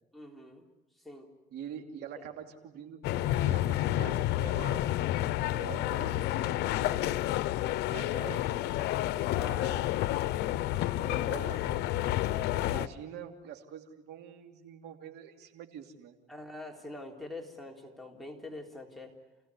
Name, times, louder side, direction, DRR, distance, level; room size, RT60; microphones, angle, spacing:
voice 1, 0.1-0.7 1.0-1.3 6.8-7.1 9.3-10.3 11.0-11.4 16.3-19.2, left 2 dB, ahead, 1 dB, 3.6 m, -45 dB
voice 2, 1.5-5.0 5.5-6.2 7.9-8.5 11.3-12.0 12.6-16.2, right 9 dB, 75° right, 5 dB, 3.0 m, -45 dB
sound 1, 3.0-12.9, left 14 dB, 80° left, 0.8 m, -30 dB
29.5 x 17.0 x 9.7 m, 1.0 s
cardioid pair, 110°, 17 cm